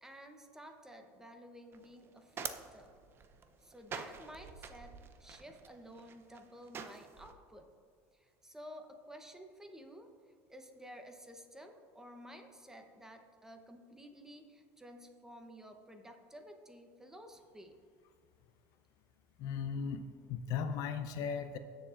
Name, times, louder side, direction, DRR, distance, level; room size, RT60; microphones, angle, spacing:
voice 1, 0.0-2.9 3.6-7.7 8.1-10.1 10.5-17.7, equal, 5° right, 5 dB, 0.9 m, -53 dB
sound 1, 1.7-7.3, right 6 dB, 35° right, 0.6 m, -47 dB
voice 2, 19.4-20.0 20.3-21.6, left 6 dB, 60° left, 9 dB, 0.6 m, -36 dB
17.0 x 7.0 x 2.5 m, 2.2 s
supercardioid pair, 125°, 7 cm